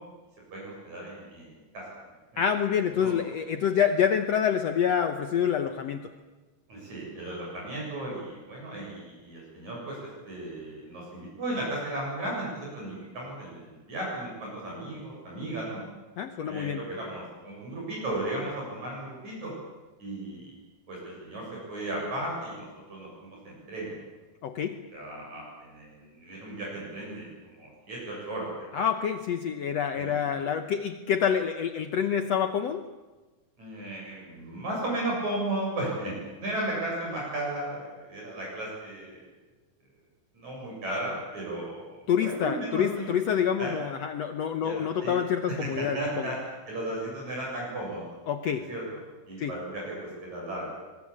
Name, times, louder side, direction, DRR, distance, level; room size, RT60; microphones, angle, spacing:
voice 1, 0.5-1.8 2.3-2.4 2.9-3.1 6.7-10.0 10.3-15.8 16.4-19.5 20.0-20.5 20.9-21.4 21.7-24.0 24.9-28.7 29.9-30.2 33.6-36.1 36.4-39.2 40.3-43.2 43.6-43.7 44.6-45.1 45.5-46.4 46.7-48.2 48.7-48.8 49.3-50.7, right 1 dB, 50° right, -4 dB, 8.8 m, -35 dB
voice 2, 2.4-6.1 16.2-16.8 24.4-24.8 28.7-32.9 42.1-46.3 48.3-48.7 49.4-49.5, left 8 dB, 75° left, 9 dB, 1.5 m, -27 dB
25.5 x 22.0 x 8.7 m, 1.2 s
omnidirectional pair, 4.3 m